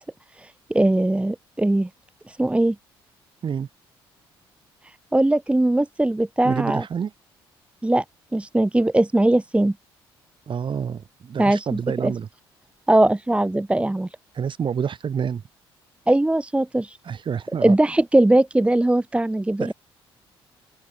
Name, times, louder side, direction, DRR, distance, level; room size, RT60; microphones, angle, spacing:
voice 1, 0.4-1.9 2.3-2.8 5.1-6.8 7.8-8.0 8.3-9.7 11.4-12.1 12.9-14.1 16.1-17.0 17.6-19.7, right 1 dB, 10° right, 1.1 m, -20 dB
voice 2, 6.4-7.1 10.5-12.3 14.3-15.4 17.0-17.7 19.6-19.7, right 7 dB, 40° right, 4.2 m, -28 dB
open air
figure-of-eight pair, 45°, 12 cm